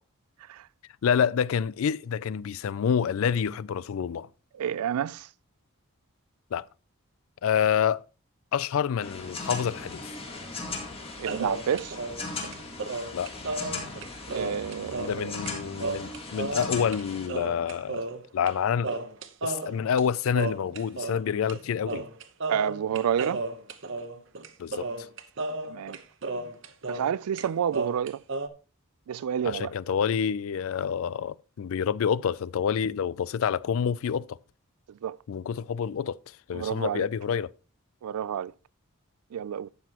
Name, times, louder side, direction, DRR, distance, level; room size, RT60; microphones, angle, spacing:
voice 1, 1.0-4.3 6.5-6.7 7.4-8.0 8.5-10.0 13.1-13.3 15.0-18.0 18.3-19.0 19.4-22.1 24.6-25.1 29.4-34.4 35.3-37.5, left 7 dB, 70° left, 0.3 m, -28 dB
voice 2, 4.6-5.3 11.2-12.0 14.3-15.3 22.5-23.4 25.6-26.0 26.9-28.2 29.1-29.7 35.0-35.2 36.5-37.1 38.0-38.5 39.3-39.7, right 8 dB, 85° right, 0.3 m, -29 dB
sound 1, 9.0-17.3, left 3 dB, 25° left, 1.8 m, -38 dB
sound 2, 11.3-15.2 15.5-15.6 15.8-17.0 17.3-18.6 18.8-21.2 21.5-21.6 21.9-27.1 27.4-28.5, right 3 dB, 55° right, 0.8 m, -33 dB
12.0 x 8.0 x 2.9 m
head